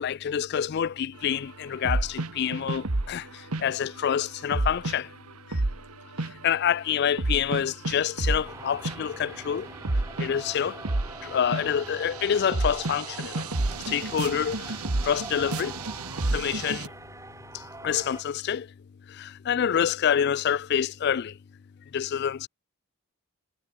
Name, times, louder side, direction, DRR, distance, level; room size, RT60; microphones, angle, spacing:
voice 1, 0.0-5.1 5.5-5.6 6.2-9.7 10.2-10.8 11.2-13.5 13.9-15.8 16.2-16.9 17.5-18.7 19.1-21.4 21.9-22.5, left 8 dB, 50° left, 0.3 m, -27 dB
sound 1, 1.8-3.2 3.5-3.7 4.5-5.0 5.5-6.4 7.2-8.5 8.8-9.3 9.6-16.9, right 2 dB, 90° right, 1.5 m, -30 dB
sound 2, 8.4-18.2, right 2 dB, 15° right, 6.5 m, -44 dB
head